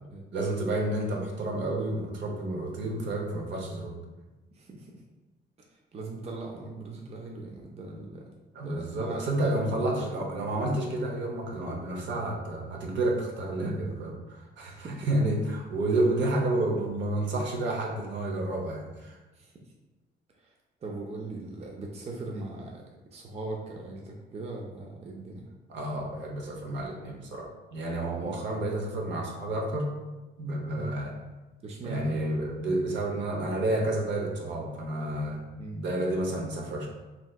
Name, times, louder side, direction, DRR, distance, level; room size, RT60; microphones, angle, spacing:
voice 1, 0.3-4.0 8.5-19.2 25.7-29.9 30.4-31.1 31.8-35.4 35.7-36.9, right 1 dB, 65° right, -1 dB, 0.7 m, -30 dB
voice 2, 4.5-4.9 5.7-8.3 8.6-10.2 13.6-13.9 14.6-15.1 19.3-19.5 20.4-20.5 20.8-22.8 23.1-25.5 28.2-28.3 30.7-30.9 31.6-32.2 35.6-35.8, right 2 dB, 30° right, -1 dB, 0.5 m, -40 dB
3.2 x 2.7 x 2.3 m, 1.1 s
cardioid pair, 90°, 20 cm